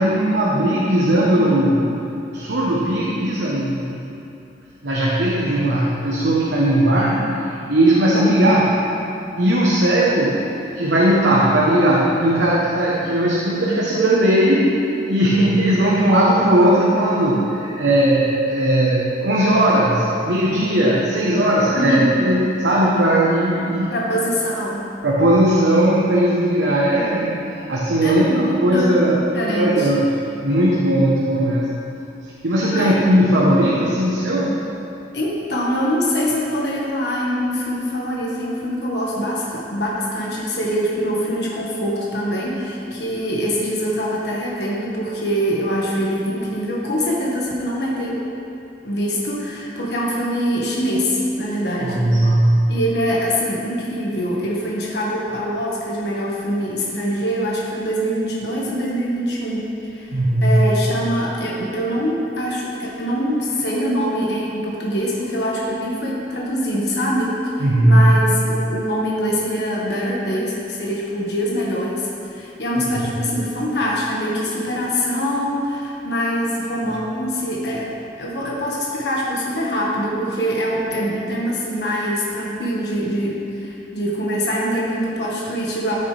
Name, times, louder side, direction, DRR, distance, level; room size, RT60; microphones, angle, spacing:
voice 1, 0.0-1.9 2.3-4.1 4.8-8.9 9.4-10.5 10.7-14.7 15.1-23.9 25.0-27.4 27.7-31.7 32.4-34.6 51.8-52.7 60.1-60.6 67.6-68.1, right 1 dB, 90° right, -5 dB, 1.1 m, -18 dB
voice 2, 21.7-22.1 23.9-24.8 28.0-29.0 29.3-29.9 32.7-33.0 35.1-48.2 48.8-52.0 52.7-60.1 60.4-77.9 78.2-86.0, equal, 70° left, -5 dB, 1.6 m, -23 dB
13.5 x 6.6 x 3.4 m, 2.7 s
head